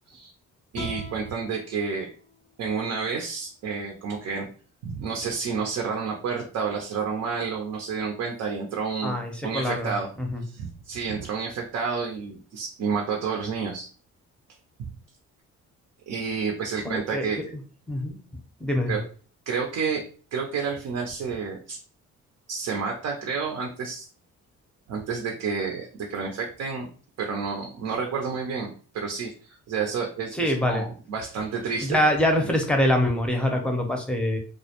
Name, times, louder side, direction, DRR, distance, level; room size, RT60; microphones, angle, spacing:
sound 1, 0.7-3.9, left 4 dB, 85° left, 0.6 m, -45 dB
voice 1, 0.7-2.1 2.6-4.5 4.8-10.1 10.4-13.9 16.1-17.4 18.9-19.0 19.5-20.0 20.3-21.8 22.5-24.1 24.9-26.9 27.2-32.1 32.4-32.5, right 5 dB, 60° right, 1 dB, 0.6 m, -30 dB
voice 2, 9.0-9.9 10.2-10.4 16.8-17.3 17.9-18.1 18.6-19.0 30.3-30.8 31.9-34.4, left 1 dB, 5° left, 2 dB, 0.6 m, -24 dB
2.3 x 2.1 x 2.8 m, 0.41 s
cardioid pair, 90°, 30 cm